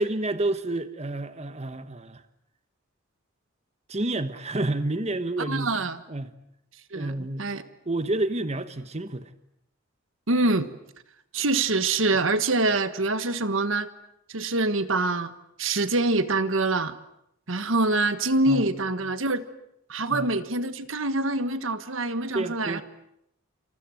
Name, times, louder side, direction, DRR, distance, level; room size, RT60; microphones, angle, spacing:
voice 1, 0.0-2.2 3.9-5.7 6.1-6.3 6.9-7.5 7.8-9.3 18.5-18.6 20.1-20.3 22.3-22.8, right 2 dB, 30° right, 1.3 m, -29 dB
voice 2, 5.5-6.0 6.9-7.6 10.3-10.7 11.3-13.9 14.3-15.3 15.6-17.0 17.5-19.5 19.9-22.8, right 2 dB, 65° right, 1.5 m, -25 dB
28.0 x 27.0 x 7.8 m
head